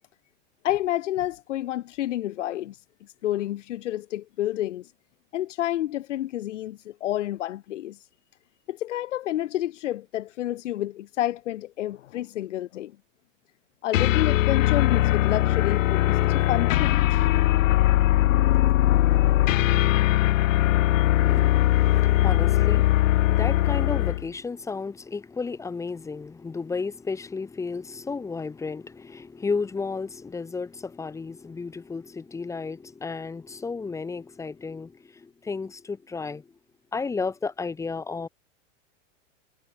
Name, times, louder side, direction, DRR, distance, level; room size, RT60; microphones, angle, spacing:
voice 1, 0.6-2.8 3.2-4.9 5.3-8.0 8.7-12.9 13.8-17.3, left 13 dB, 70° left, 4.8 m, -29 dB
sound 1, 13.9-24.3, left 15 dB, 85° left, 1.1 m, -20 dB
voice 2, 21.2-36.5 36.9-38.3, left 4 dB, 10° left, 5.1 m, -33 dB
supercardioid pair, 175°, 38 cm